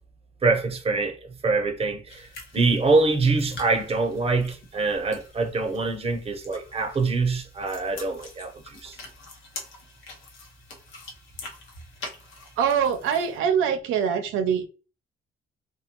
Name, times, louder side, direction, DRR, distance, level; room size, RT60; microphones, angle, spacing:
voice 1, 0.4-2.3 2.5-9.0, right 3 dB, 30° right, 0.7 m, -24 dB
sound 1, 2.1-13.4, left 2 dB, 80° left, 0.9 m, -45 dB
voice 2, 12.6-14.7, right 7 dB, 85° right, 0.5 m, -23 dB
2.9 x 2.2 x 2.8 m
cardioid pair, 90°, 20 cm